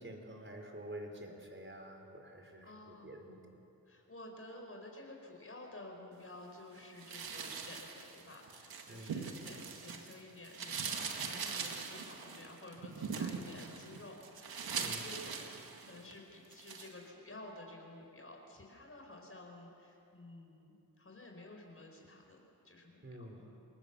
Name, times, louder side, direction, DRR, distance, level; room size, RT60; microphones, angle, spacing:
voice 1, 0.0-3.4 8.9-9.2 14.7-15.1 23.0-23.4, right 1 dB, 30° right, 3 dB, 4.9 m, -48 dB
voice 2, 2.6-3.1 3.9-23.5, left 2 dB, 35° left, 1 dB, 4.5 m, -52 dB
sound 1, 7.0-10.1 10.4-16.1 16.5-16.9, right 5 dB, 80° right, 2.1 m, -42 dB
28.0 x 19.5 x 7.1 m, 2.8 s
cardioid pair, 55°, 36 cm